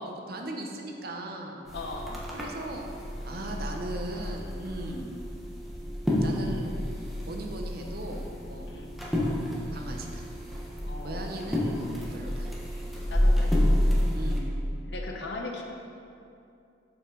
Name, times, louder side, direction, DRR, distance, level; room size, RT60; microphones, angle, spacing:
voice 1, 0.0-1.6 2.3-2.9 3.2-5.1 6.2-6.7 7.3-8.7 9.7-10.2 11.0-12.5 14.1-14.5, right 1 dB, 60° right, 2 dB, 0.8 m, -38 dB
voice 2, 1.7-2.1 8.7-9.0 10.9-11.3 13.1-13.5 14.9-15.6, left 2 dB, 70° left, 1 dB, 0.9 m, -38 dB
sound 1, 1.7-14.4, left 1 dB, ahead, 1.1 m, -29 dB
7.0 x 7.0 x 3.8 m, 2.6 s
head